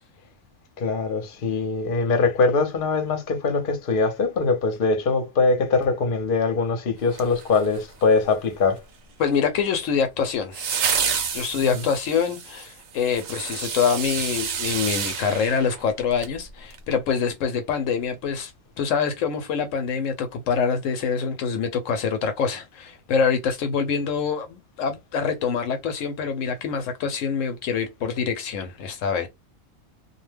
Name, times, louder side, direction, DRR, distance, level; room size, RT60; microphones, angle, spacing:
voice 1, 0.8-8.8 11.6-11.7, left 4 dB, 50° left, 0.8 m, -22 dB
sound 1, 7.1-8.0 10.5-16.4 16.7-16.8, right 6 dB, 80° right, 1.1 m, -29 dB
voice 2, 9.2-10.7 11.3-18.5 18.8-29.3, left 6 dB, 75° left, 0.9 m, -25 dB
2.4 x 2.1 x 3.2 m
omnidirectional pair, 1.4 m